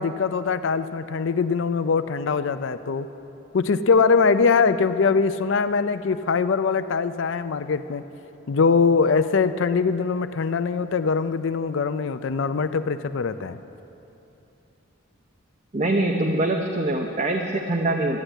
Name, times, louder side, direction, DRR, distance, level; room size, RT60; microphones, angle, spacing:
voice 1, 0.0-3.1 3.5-8.0 8.5-13.6, left 5 dB, 65° left, 11 dB, 0.4 m, -22 dB
voice 2, 15.7-18.2, right 2 dB, 35° right, 2 dB, 0.7 m, -23 dB
13.0 x 9.8 x 9.0 m, 2.9 s
head